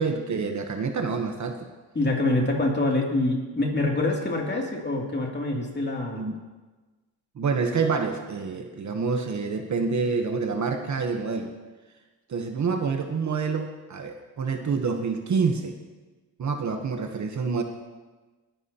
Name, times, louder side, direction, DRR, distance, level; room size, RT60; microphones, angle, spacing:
voice 1, 0.0-1.6 6.1-6.4 7.4-11.5 12.3-15.8 16.4-17.6, right 5 dB, 45° right, 5 dB, 1.1 m, -27 dB
voice 2, 1.9-6.2, left 2 dB, 25° left, -1 dB, 2.7 m, -25 dB
20.5 x 11.0 x 2.9 m, 1.2 s
cardioid pair, 100°, 41 cm